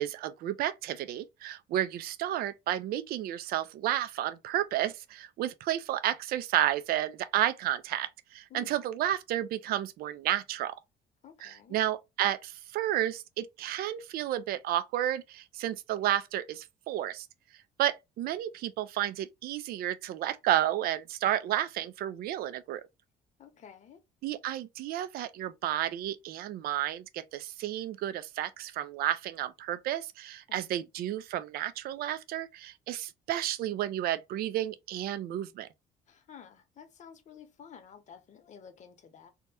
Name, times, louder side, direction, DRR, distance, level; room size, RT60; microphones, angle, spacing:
voice 1, 0.0-10.7 11.4-17.3 17.8-22.8 24.2-35.7, right 12 dB, 65° right, 0.4 m, -31 dB
voice 2, 11.2-11.8 23.4-24.0 30.5-30.9 36.1-39.3, left 8 dB, 45° left, 0.8 m, -52 dB
2.8 x 2.1 x 3.4 m
cardioid pair, 110°, 17 cm